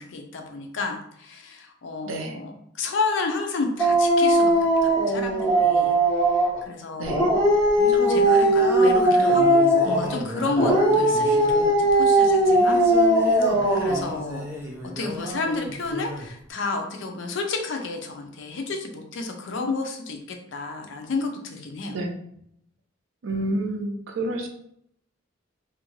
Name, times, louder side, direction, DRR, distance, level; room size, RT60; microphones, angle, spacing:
voice 1, 0.0-5.9 6.3-7.3 7.9-12.8 13.7-14.4 15.0-22.0, left 3 dB, 65° left, 4 dB, 0.5 m, -31 dB
voice 2, 2.1-2.4 7.0-7.3 21.9-22.2 23.2-24.5, right 1 dB, 70° right, 4 dB, 0.5 m, -29 dB
Dog, 3.8-6.6 7.0-10.1 10.5-14.1, right 1 dB, 20° left, 1.3 m, -19 dB
Singing, 7.3-16.3, equal, 10° right, 0.4 m, -34 dB
2.5 x 2.2 x 3.0 m, 0.71 s
head